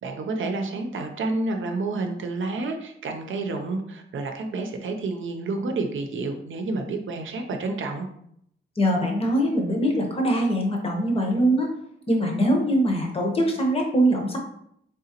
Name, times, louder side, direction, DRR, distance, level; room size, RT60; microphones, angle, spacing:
voice 1, 0.0-8.1, right 3 dB, 75° right, 4 dB, 0.6 m, -29 dB
voice 2, 8.8-11.7 12.1-14.4, right 1 dB, 30° left, 1 dB, 0.8 m, -22 dB
3.7 x 3.7 x 2.8 m, 0.72 s
wide cardioid pair, 160°, 20 cm